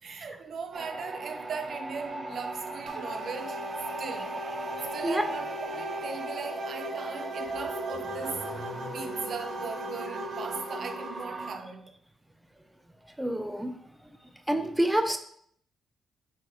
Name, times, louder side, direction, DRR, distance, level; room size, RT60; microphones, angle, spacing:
voice 1, 0.0-3.6 4.0-4.4 4.9-8.7 8.9-12.0, right 5 dB, 65° right, 0.9 m, -39 dB
sound 1, 0.7-11.6, right 3 dB, 30° right, 1.0 m, -38 dB
sound 2, 2.9-11.2, left 1 dB, 85° right, 1.2 m, -40 dB
Car / Accelerating revving vroom, 7.4-9.6, left 2 dB, 55° left, 2.1 m, -45 dB
voice 2, 13.2-13.8 14.5-15.2, right 1 dB, 5° right, 0.7 m, -27 dB
8.7 x 4.7 x 3.1 m
cardioid pair, 70°, 0 cm